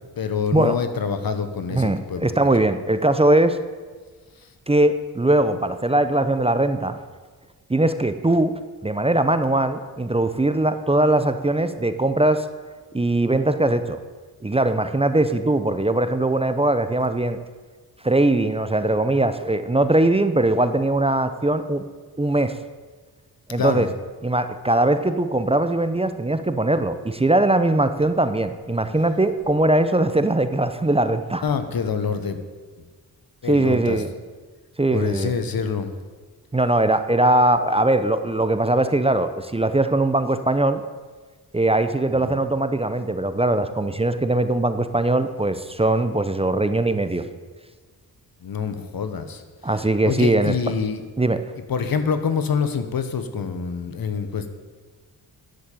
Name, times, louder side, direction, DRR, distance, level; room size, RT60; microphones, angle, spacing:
voice 1, 0.2-2.3 23.6-23.9 28.8-28.9 31.4-32.4 33.4-34.0 34.9-35.9 42.2-42.3 48.4-49.4 50.1-51.0 51.7-54.5, left 6 dB, 65° left, 9 dB, 1.3 m, -26 dB
voice 2, 1.7-3.6 4.7-7.0 7.7-12.4 12.9-14.0 14.4-17.4 18.0-21.8 22.2-22.6 23.5-23.9 24.2-31.4 33.4-34.1 34.8-35.3 36.5-40.8 41.5-47.3 49.6-50.7 51.2-51.4, right 2 dB, 15° right, 10 dB, 0.8 m, -20 dB
10.5 x 7.6 x 8.5 m, 1.4 s
cardioid pair, 80°, 38 cm